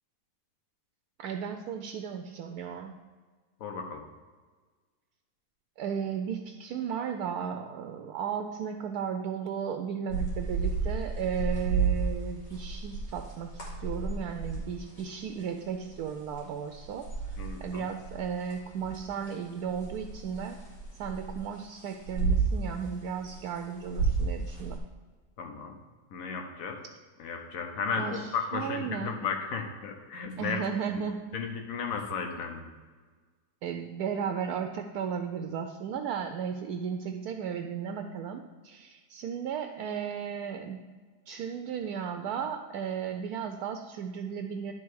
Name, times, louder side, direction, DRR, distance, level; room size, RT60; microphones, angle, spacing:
voice 1, 1.2-3.0 5.8-20.6 21.0-24.8 28.0-29.2 30.4-31.4 33.6-40.8 41.3-44.7, right 7 dB, 75° right, 5 dB, 1.0 m, -35 dB
voice 2, 3.6-4.0 17.4-17.9 25.4-25.8 26.1-26.8 27.2-30.6 31.3-32.7, left 5 dB, 60° left, 4 dB, 1.3 m, -34 dB
sound 1, 10.1-16.4 16.7-22.9 23.2-24.8, right 4 dB, 90° left, 2.9 m, -32 dB
11.0 x 4.0 x 4.6 m, 1.4 s
omnidirectional pair, 1.7 m